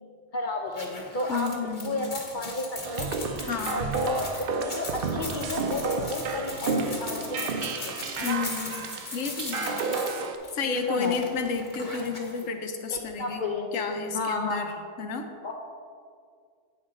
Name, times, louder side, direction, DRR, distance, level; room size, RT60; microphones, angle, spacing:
voice 1, 0.3-1.6 1.8-3.1 3.7-4.3 4.6-7.5 7.8-8.4 10.6-11.2 12.9-13.7 14.1-14.7 15.4-15.5, left 2 dB, 55° left, 2 dB, 0.5 m, -32 dB
sound 1, 0.7-12.4, left 2 dB, 40° left, 1.3 m, -39 dB
voice 2, 1.3-2.0 3.4-3.9 8.2-8.8 9.1-9.8 10.5-13.4 13.7-14.7 15.0-15.3, left 5 dB, 90° left, 5 dB, 1.1 m, -31 dB
sound 2, 2.8-10.4, right 4 dB, 60° right, 0.6 m, -31 dB
8.8 x 5.5 x 3.7 m, 2.2 s
omnidirectional pair, 1.3 m